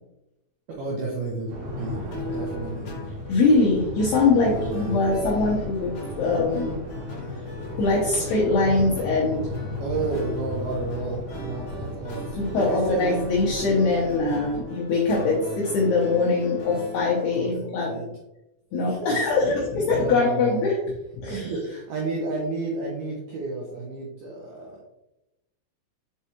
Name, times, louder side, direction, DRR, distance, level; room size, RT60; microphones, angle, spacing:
voice 1, 0.8-3.1 4.4-5.0 9.8-13.2 15.1-15.6 17.3-18.1 18.9-20.7 21.2-24.8, right 3 dB, 85° right, -4 dB, 2.2 m, -32 dB
sound 1, 1.5-14.6, left 2 dB, 60° right, 2.0 m, -35 dB
sound 2, 2.1-17.3, left 1 dB, 60° left, 2.4 m, -39 dB
voice 2, 3.3-6.8 7.8-9.5 12.3-18.0 18.7-20.8 21.2-21.5, left 3 dB, 80° left, -4 dB, 2.3 m, -22 dB
7.3 x 4.7 x 2.9 m, 0.93 s
omnidirectional pair, 6.0 m